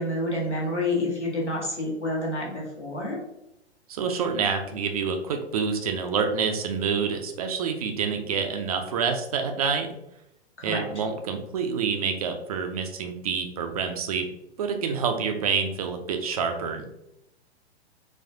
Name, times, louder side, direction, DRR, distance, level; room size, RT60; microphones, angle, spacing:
voice 1, 0.0-3.2 10.6-10.8, left 1 dB, 90° left, -3 dB, 1.3 m, -28 dB
voice 2, 3.9-9.9 10.6-14.3 14.6-16.9, right 6 dB, 35° right, 5 dB, 0.4 m, -27 dB
4.0 x 2.3 x 2.7 m, 0.83 s
figure-of-eight pair, 105°, 34 cm